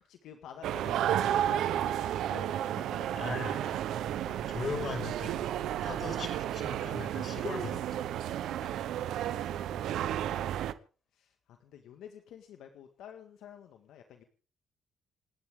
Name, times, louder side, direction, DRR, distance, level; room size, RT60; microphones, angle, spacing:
voice 1, 0.0-3.6 4.1-4.5 9.3-10.1 11.1-14.2, left 9 dB, 85° left, 5 dB, 1.8 m, -51 dB
sound 1, 0.6-10.7, right 11 dB, 80° right, 1.0 m, -32 dB
voice 2, 3.2-3.7 4.2-5.5 5.8-8.0 8.6-8.7, left 4 dB, 50° left, 5 dB, 5.9 m, -39 dB
28.5 x 11.5 x 3.8 m, 0.38 s
cardioid pair, 90°, 0 cm